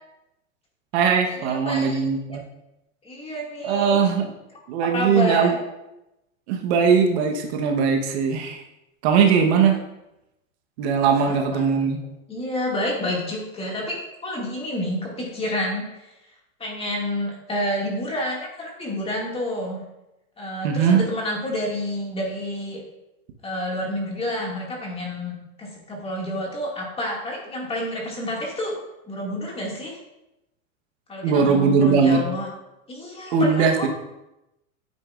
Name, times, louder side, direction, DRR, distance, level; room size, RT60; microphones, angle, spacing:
voice 1, 0.9-2.4 3.6-4.3 4.7-5.5 6.5-8.6 9.0-9.8 10.8-12.0 20.6-21.0 31.2-32.2 33.3-33.9, right 6 dB, 50° right, 3 dB, 1.1 m, -20 dB
voice 2, 1.5-2.0 2.3-2.4 3.0-4.0 4.8-5.5 11.3-11.6 12.3-16.1 16.6-19.8 20.4-22.8 23.4-28.8 29.1-30.0 31.1-32.5 32.9-33.9, left 1 dB, 15° left, -2 dB, 2.0 m, -29 dB
9.5 x 8.1 x 2.4 m, 0.91 s
supercardioid pair, 140°, 40 cm